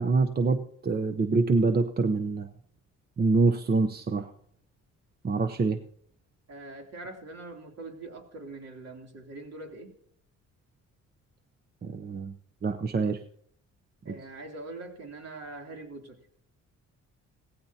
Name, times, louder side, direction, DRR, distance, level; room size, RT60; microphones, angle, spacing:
voice 1, 0.0-2.5 3.2-4.3 5.2-5.8 11.8-12.3 12.6-13.2 14.1-14.2, right 3 dB, 30° right, 0.8 m, -25 dB
voice 2, 6.5-9.9 14.0-16.2, right 2 dB, 55° right, 3.0 m, -43 dB
17.0 x 15.5 x 2.8 m
cardioid pair, 90°, 30 cm